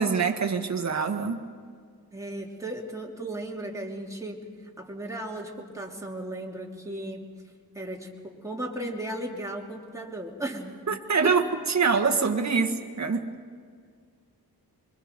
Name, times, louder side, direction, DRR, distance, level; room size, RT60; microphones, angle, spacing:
voice 1, 0.0-1.5 10.9-11.4 11.7-13.3, right 5 dB, 45° right, 4 dB, 1.6 m, -25 dB
voice 2, 2.1-4.4 4.8-7.3 7.7-10.8 11.2-11.4, right 1 dB, 10° right, -2 dB, 2.9 m, -35 dB
26.5 x 23.5 x 5.3 m, 2.1 s
wide cardioid pair, 95°, 38 cm